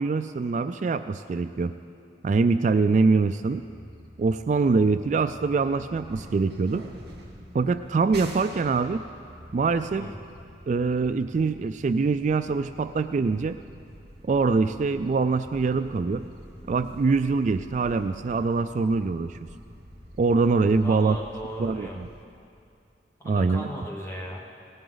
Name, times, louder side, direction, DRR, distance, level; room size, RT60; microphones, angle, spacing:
voice 1, 0.0-1.7 2.2-3.6 4.2-6.8 7.5-9.0 9.5-10.1 10.7-13.6 14.2-16.2 16.7-19.5 20.2-21.2 21.6-22.1 23.2-23.7, right 4 dB, 40° right, 10 dB, 0.3 m, -24 dB
sound 1, 3.4-22.2, equal, 60° right, 2.1 m, -47 dB
voice 2, 20.8-22.0 23.2-24.4, equal, 15° left, -1 dB, 1.2 m, -37 dB
18.5 x 16.0 x 3.9 m, 2.5 s
head